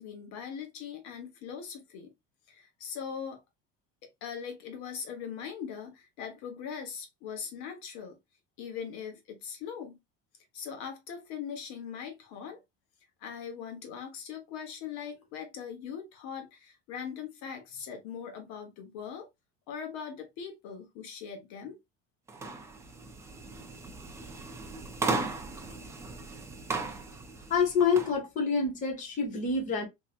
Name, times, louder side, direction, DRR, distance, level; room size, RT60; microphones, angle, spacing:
voice 1, 0.0-2.1 2.5-3.4 4.2-8.2 8.6-10.0 10.5-12.6 13.2-19.3 19.7-21.8, left 7 dB, 60° left, 1.1 m, -40 dB
sound 1, 22.3-28.1, right 3 dB, 10° right, 0.3 m, -36 dB
voice 2, 27.5-29.8, left 5 dB, 25° left, 1.1 m, -27 dB
3.2 x 2.8 x 2.3 m
cardioid pair, 160°, 31 cm